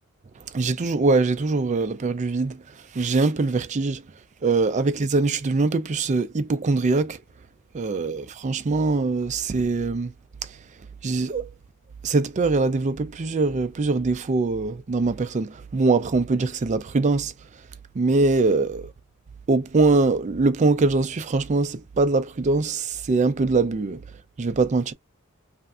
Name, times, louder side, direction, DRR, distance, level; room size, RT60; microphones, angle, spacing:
voice 1, 0.5-2.6 2.9-4.0 4.4-7.2 7.7-10.1 11.0-11.5 12.0-17.3 17.9-18.9 19.5-24.0 24.4-24.9, right 3 dB, 35° right, 0.4 m, -22 dB
3.2 x 2.6 x 2.4 m
head